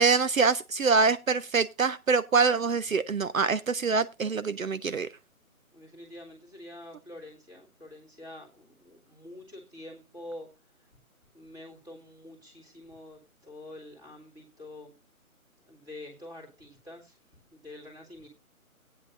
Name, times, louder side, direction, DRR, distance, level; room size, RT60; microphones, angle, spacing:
voice 1, 0.0-5.1, right 5 dB, 65° right, 0.7 m, -25 dB
voice 2, 5.7-10.5 11.3-14.9 15.7-17.1 17.5-18.3, left 1 dB, 5° right, 2.1 m, -46 dB
16.5 x 9.5 x 2.5 m
figure-of-eight pair, 155°, 43 cm